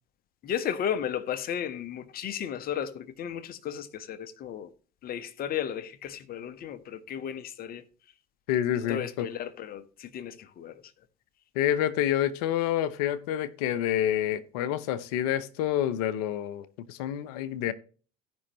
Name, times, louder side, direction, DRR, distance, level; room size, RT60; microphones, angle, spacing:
voice 1, 0.4-4.7 5.0-7.8 8.8-10.8, left 9 dB, 45° left, 1.2 m, -34 dB
voice 2, 8.5-9.3 11.5-17.7, left 11 dB, 70° left, 0.9 m, -28 dB
16.5 x 5.6 x 3.1 m
hypercardioid pair, 70°, 20 cm